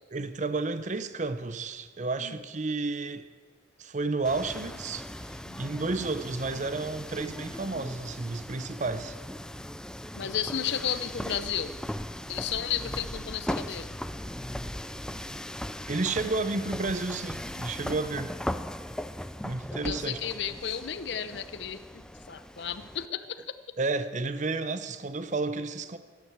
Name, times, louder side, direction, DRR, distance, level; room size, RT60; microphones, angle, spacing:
voice 1, 0.1-3.3 3.8-9.2 15.9-18.3 19.4-20.2 23.8-26.0, right 3 dB, 40° right, 0.7 m, -31 dB
sound 1, 4.2-23.1, left 1 dB, 5° left, 0.3 m, -38 dB
voice 2, 5.5-5.8 10.1-11.8 12.3-14.0 19.8-23.4, left 8 dB, 60° left, 0.7 m, -33 dB
12.0 x 11.0 x 8.0 m
head